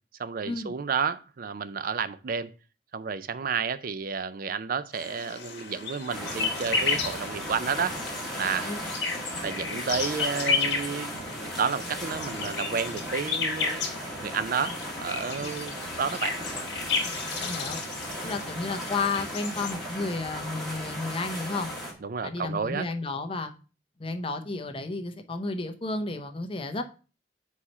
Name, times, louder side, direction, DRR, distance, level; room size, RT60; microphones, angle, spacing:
voice 1, 0.2-2.5 2.9-8.0 8.4-8.7 9.4-13.9 14.2-16.4 22.0-22.9, right 6 dB, 50° right, 0.4 m, -31 dB
sound 1, 4.9-19.7, left 5 dB, 65° left, 1.5 m, -33 dB
sound 2, 6.1-21.9, equal, ahead, 1.7 m, -36 dB
voice 2, 17.4-17.8 18.2-21.7 22.2-23.5 24.0-26.9, left 3 dB, 30° left, 0.7 m, -32 dB
4.8 x 4.2 x 5.4 m
head